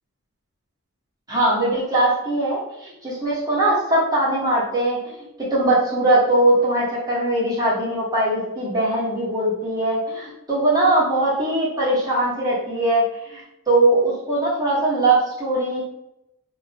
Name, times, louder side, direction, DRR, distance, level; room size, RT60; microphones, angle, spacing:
voice 1, 1.3-15.8, right 1 dB, 15° right, -8 dB, 1.1 m, -21 dB
2.4 x 2.2 x 3.9 m, 0.85 s
head